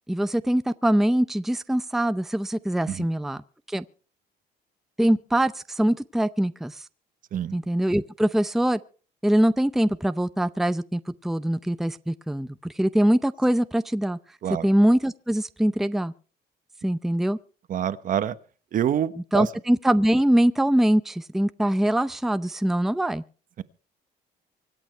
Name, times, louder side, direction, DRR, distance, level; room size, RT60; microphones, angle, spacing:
voice 1, 0.1-3.4 3.7-3.8 5.0-6.9 7.5-8.8 9.2-14.2 14.6-16.1 16.8-17.4 19.3-23.2, right 1 dB, ahead, 0.6 m, -23 dB
voice 2, 17.7-18.3 18.7-19.5 23.6-23.7, right 10 dB, 55° right, 1.1 m, -26 dB
25.0 x 8.8 x 4.5 m
cardioid pair, 110°, 17 cm